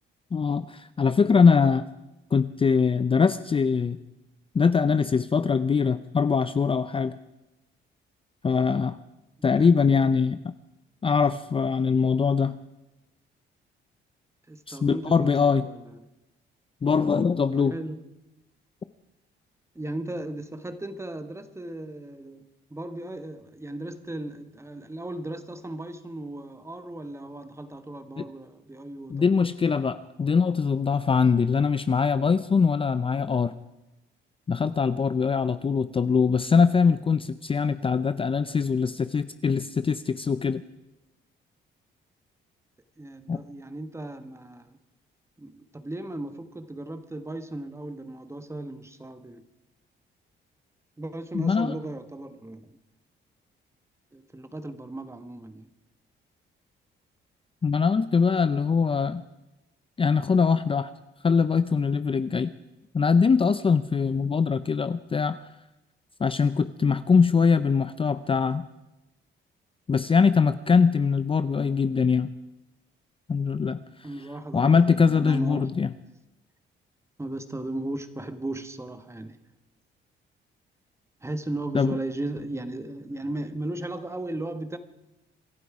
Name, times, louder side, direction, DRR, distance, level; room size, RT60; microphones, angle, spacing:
voice 1, 0.3-1.9 2.3-4.0 4.5-7.2 8.4-9.0 9.4-10.5 11.0-12.6 14.7-15.7 16.8-17.7 28.2-28.3 29.1-33.5 34.5-40.6 43.3-43.4 51.3-51.7 57.6-59.2 60.0-60.9 61.2-62.5 62.9-65.4 66.2-68.7 69.9-72.3 73.3-73.8 74.5-75.9 81.7-82.0, left 5 dB, 25° left, 0.5 m, -22 dB
voice 2, 9.4-9.9 14.5-16.0 17.5-18.0 19.7-29.4 43.0-44.8 45.4-49.5 51.0-52.8 54.1-55.7 74.0-75.9 77.2-79.4 81.2-84.8, right 1 dB, 15° right, 1.4 m, -36 dB
26.0 x 11.5 x 4.9 m
cardioid pair, 90°, 20 cm